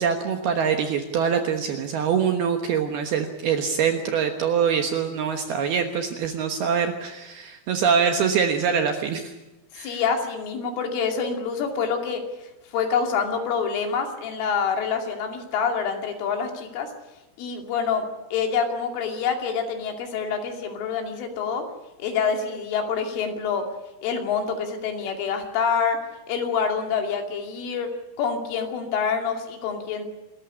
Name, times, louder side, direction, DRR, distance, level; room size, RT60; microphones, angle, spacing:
voice 1, 0.0-9.3 9.8-10.0, right 7 dB, 65° right, 5 dB, 2.6 m, -24 dB
voice 2, 9.7-12.2 12.7-16.9 17.4-18.1 18.3-21.7 22.0-23.7 24.0-27.9 28.2-30.0, left 6 dB, 70° left, 4 dB, 5.0 m, -26 dB
27.5 x 14.0 x 9.9 m, 0.99 s
omnidirectional pair, 5.9 m